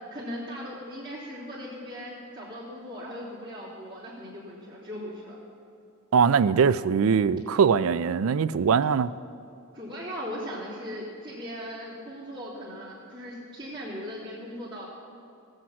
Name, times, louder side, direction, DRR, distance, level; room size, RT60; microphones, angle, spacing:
voice 1, 0.1-5.4 9.7-14.9, equal, 20° right, -11 dB, 3.1 m, -38 dB
voice 2, 6.1-9.1, right 6 dB, 75° right, 15 dB, 0.4 m, -22 dB
18.5 x 7.9 x 5.9 m, 2.5 s
head